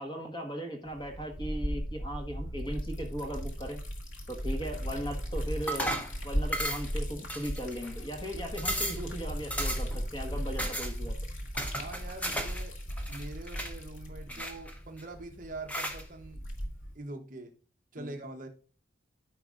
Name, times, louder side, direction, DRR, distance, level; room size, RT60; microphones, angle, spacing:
voice 1, 0.0-3.8 4.3-5.9 6.2-11.2 14.3-14.4 17.9-18.2, equal, 25° left, 3 dB, 1.5 m, -38 dB
Liquid, 0.9-17.0, equal, 90° left, 1.9 m, -37 dB
sound 1, 5.7-6.1 6.5-7.0 7.3-7.9 8.3-8.4 8.6-9.1 9.5-10.0 10.6-10.9 11.6-12.6 12.9-13.7 14.3-15.0 15.7-16.0, right 1 dB, 5° left, 0.9 m, -34 dB
voice 2, 11.7-12.8 13.1-16.4 16.9-17.5 17.9-18.5, right 2 dB, 40° right, 5 dB, 0.9 m, -43 dB
13.5 x 5.1 x 2.5 m, 0.40 s
head